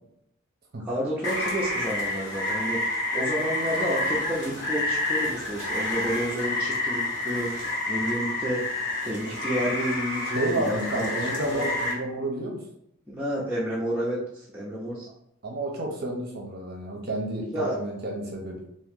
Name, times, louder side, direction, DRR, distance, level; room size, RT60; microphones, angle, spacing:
voice 1, 0.8-7.5 7.9-8.8 9.0-11.7 13.1-15.1 17.5-17.8, equal, 5° right, -7 dB, 0.5 m, -30 dB
Rain, 1.2-11.9, left 2 dB, 55° left, 1.1 m, -29 dB
voice 2, 10.3-12.6 15.4-18.6, right 1 dB, 50° right, 0 dB, 0.6 m, -30 dB
2.9 x 2.6 x 3.6 m, 0.75 s
head